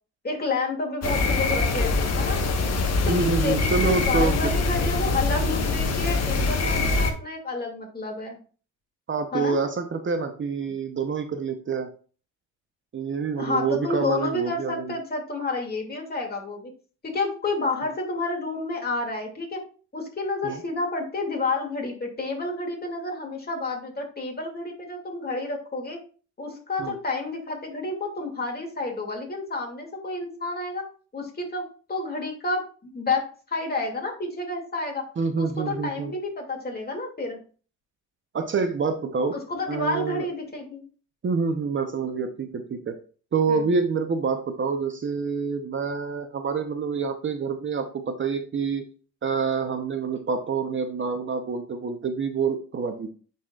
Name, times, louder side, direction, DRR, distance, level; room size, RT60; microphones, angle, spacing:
voice 1, 0.2-2.4 3.0-8.4 9.3-9.6 13.4-16.7 17.0-19.6 19.9-26.0 26.4-30.8 31.1-31.6 31.9-35.0 35.4-37.4 39.5-40.8 43.5-43.6, left 3 dB, 30° left, 1 dB, 2.4 m, -30 dB
sound 1, 1.0-7.1, left 3 dB, 55° left, 1.3 m, -24 dB
voice 2, 3.1-4.5 9.1-11.9 12.9-14.9 20.4-20.6 26.8-26.9 35.2-36.1 38.3-39.4 39.7-40.3 41.2-42.9 43.3-48.8 49.2-53.1, right 5 dB, 40° right, 7 dB, 0.8 m, -27 dB
9.4 x 4.3 x 2.4 m, 0.39 s
cardioid pair, 90°, 30 cm